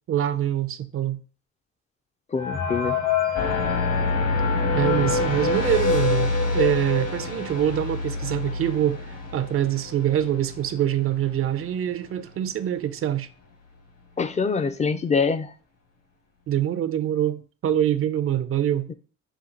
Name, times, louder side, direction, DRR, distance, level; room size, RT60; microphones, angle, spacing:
voice 1, 0.1-1.2 4.7-13.3 16.5-18.9, right 11 dB, 45° right, 0.4 m, -25 dB
voice 2, 2.3-3.0 14.2-15.5 18.9-19.0, left 5 dB, 25° left, 0.4 m, -24 dB
sound 1, 2.4-7.8 8.2-8.3 8.5-8.7 9.4-9.5 9.9-10.2, left 4 dB, 75° left, 1.2 m, -28 dB
sound 2, 3.3-11.9, left 3 dB, 55° left, 1.4 m, -28 dB
5.8 x 2.3 x 3.7 m
cardioid pair, 90°, 30 cm